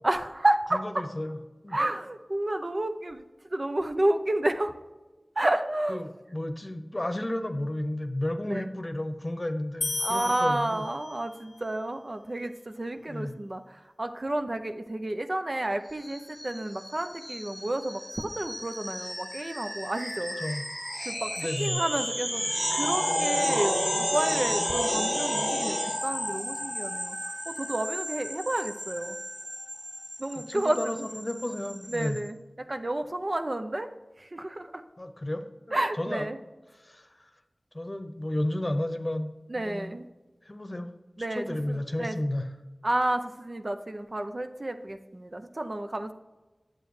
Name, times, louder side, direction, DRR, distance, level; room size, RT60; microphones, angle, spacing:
voice 1, 0.0-1.0 1.7-3.2 3.5-4.7 5.4-6.1 8.5-8.7 10.0-20.4 21.0-22.4 22.7-25.7 26.0-27.2 27.5-29.2 30.2-31.1 31.9-33.9 34.2-34.8 35.7-36.4 39.5-40.1 41.2-42.2 42.8-46.1, right 1 dB, 50° right, 7 dB, 0.6 m, -30 dB
voice 2, 0.7-1.4 1.6-1.8 5.9-10.9 13.1-13.3 20.4-20.7 21.4-21.8 30.3-32.2 35.0-36.3 36.8-37.3 37.7-39.3 39.6-39.9 40.4-40.9 41.3-42.5, left 1 dB, 35° left, 7 dB, 0.8 m, -32 dB
sound 1, 9.8-11.4, left 3 dB, 80° left, 0.4 m, -34 dB
sound 2, 16.0-32.2, equal, 5° left, 1.0 m, -32 dB
9.2 x 7.7 x 3.2 m, 1.2 s
wide cardioid pair, 40°, 0 cm